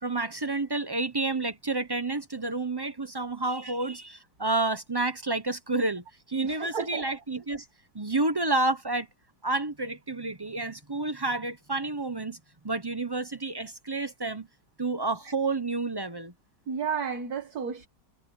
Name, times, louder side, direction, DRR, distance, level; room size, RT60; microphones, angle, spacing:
voice 1, 0.0-7.6 7.9-9.1 9.4-12.4 12.6-14.5 14.8-16.3, right 2 dB, 25° right, 0.5 m, -30 dB
voice 2, 6.4-7.1 16.7-17.9, right 6 dB, 60° right, 2.2 m, -32 dB
omnidirectional pair, 1.9 m